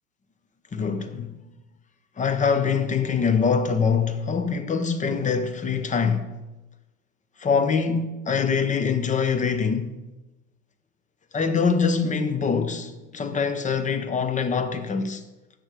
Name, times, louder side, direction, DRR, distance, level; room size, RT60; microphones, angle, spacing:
voice 1, 0.7-1.4 2.2-6.3 7.4-10.0 11.3-15.2, left 5 dB, 15° left, 0.8 m, -24 dB
10.5 x 6.4 x 4.9 m
hypercardioid pair, 105°, 43 cm